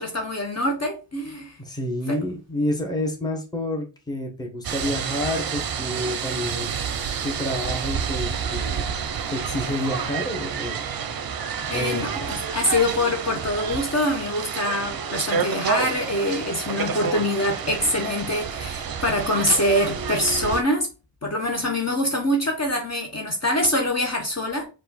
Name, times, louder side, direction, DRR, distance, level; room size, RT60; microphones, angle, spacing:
voice 1, 0.0-1.6 2.1-2.2 11.7-20.9 21.2-24.7, left 1 dB, 35° left, 0.8 m, -24 dB
voice 2, 1.6-6.8 7.2-8.8 9.3-10.8 11.7-12.2, left 1 dB, 10° left, 1.0 m, -29 dB
sound 1, 4.6-20.6, right 6 dB, 50° right, 0.5 m, -29 dB
4.6 x 2.4 x 4.0 m
wide cardioid pair, 145°, 46 cm